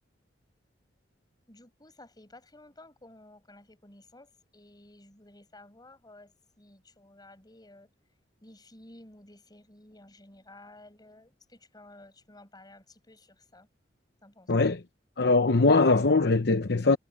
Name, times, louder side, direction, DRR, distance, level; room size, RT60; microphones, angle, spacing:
voice 1, 1.5-7.9 8.4-13.7 14.2-14.5, left 1 dB, 20° left, 7.5 m, -53 dB
voice 2, 14.5-14.8 15.2-17.0, left 3 dB, 65° left, 0.9 m, -21 dB
head